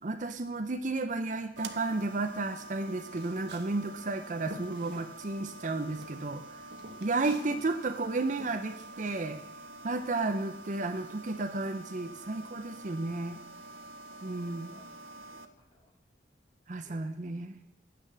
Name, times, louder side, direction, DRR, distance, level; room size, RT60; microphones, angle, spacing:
voice 1, 0.0-6.6 7.0-9.4 9.8-13.4 14.2-14.8 16.7-17.6, right 3 dB, 45° right, 8 dB, 0.6 m, -33 dB
sound 1, 1.6-15.5, right 2 dB, 80° right, 0.7 m, -47 dB
Walk footsteps, 3.1-5.5 5.8-7.7 7.9-9.5, right 1 dB, 60° right, 1.2 m, -48 dB
voice 2, 14.5-15.0 15.3-15.9 16.8-17.0 17.5-17.6, left 1 dB, 30° left, -2 dB, 2.4 m, -65 dB
8.7 x 6.0 x 6.8 m, 0.75 s
head